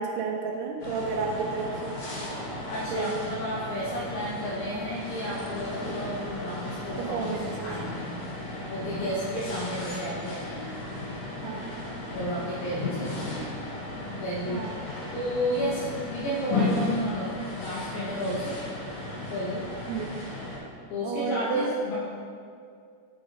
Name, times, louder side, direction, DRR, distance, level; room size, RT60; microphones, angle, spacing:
voice 1, 0.0-1.9 2.9-3.2 7.0-7.7 9.0-9.2 11.4-11.8 14.5-14.8 19.9-20.3 21.0-21.7, right 4 dB, 90° right, 1 dB, 2.7 m, -32 dB
sound 1, 0.8-20.6, left 2 dB, 55° left, 2.8 m, -35 dB
voice 2, 2.7-7.4 7.6-8.0 8.7-10.6 12.1-13.5 14.1-14.7 15.1-18.6 19.3-19.6 20.9-22.0, equal, 70° left, -7 dB, 2.6 m, -32 dB
6.9 x 6.1 x 4.1 m, 2.2 s
omnidirectional pair, 4.5 m